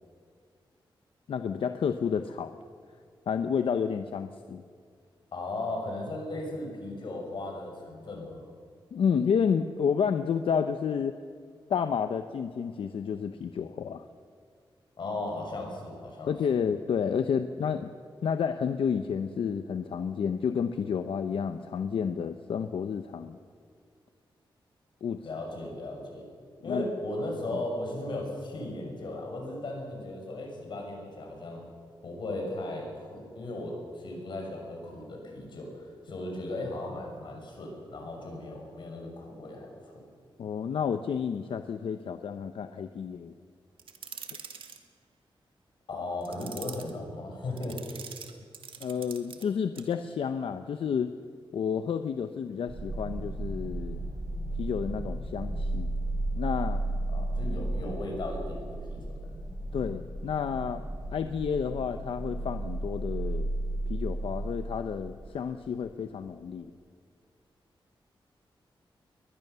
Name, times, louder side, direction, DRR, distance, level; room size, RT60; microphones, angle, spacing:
voice 1, 1.3-2.5 3.3-4.6 8.9-11.2 11.7-14.0 16.3-17.9 18.2-23.4 25.0-25.2 26.6-26.9 40.4-43.3 48.8-51.1 51.5-54.0 54.6-55.9 56.4-56.8 59.7-60.8 61.1-63.5 63.9-66.7, left 7 dB, 85° left, 9 dB, 0.8 m, -30 dB
voice 2, 5.3-8.5 15.0-16.6 25.2-26.2 26.6-31.6 32.0-40.0 45.9-48.1 57.1-59.0, left 2 dB, 60° left, 1 dB, 6.3 m, -36 dB
sound 1, 43.8-44.8 46.2-46.9 47.6-49.5 49.8-49.9, right 6 dB, 80° right, 1.9 m, -44 dB
sound 2, 52.7-65.5, right 2 dB, 30° right, 4.9 m, -34 dB
22.0 x 20.0 x 6.9 m, 2.1 s
wide cardioid pair, 170°, 9 cm